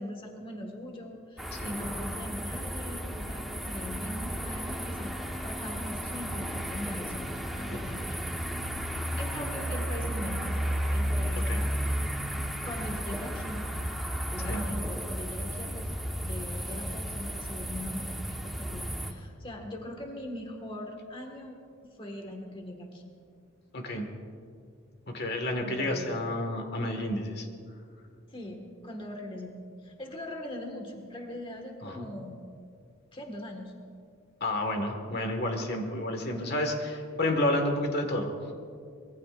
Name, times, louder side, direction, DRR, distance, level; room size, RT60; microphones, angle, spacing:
voice 1, 0.0-8.2 9.1-11.9 12.6-13.7 14.3-16.0 16.2-21.6 21.8-23.1 25.6-26.1 28.3-32.4 33.1-33.7, left 1 dB, 25° left, 2 dB, 1.7 m, -41 dB
sound 1, 1.4-19.1, equal, ahead, 1.2 m, -33 dB
voice 2, 1.5-1.9 11.3-11.6 14.4-14.7 23.7-24.1 25.1-27.5 31.8-32.1 34.4-38.3, left 1 dB, 50° left, 3 dB, 1.7 m, -30 dB
24.5 x 21.5 x 2.5 m, 2.2 s
head